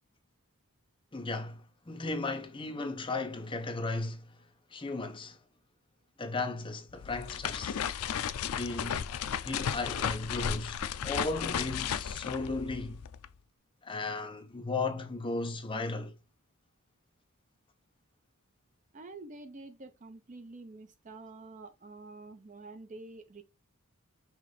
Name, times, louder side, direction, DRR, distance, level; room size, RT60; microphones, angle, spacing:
voice 1, 1.1-4.2 4.7-5.4 6.2-7.8 8.4-9.0 9.4-10.8 11.0-13.0 13.8-16.1, left 3 dB, 25° left, 0.7 m, -35 dB
sound 1, 6.9-13.3, left 8 dB, 85° left, 0.4 m, -34 dB
voice 2, 18.9-23.4, right 3 dB, 35° right, 0.5 m, -48 dB
5.7 x 2.5 x 3.2 m
head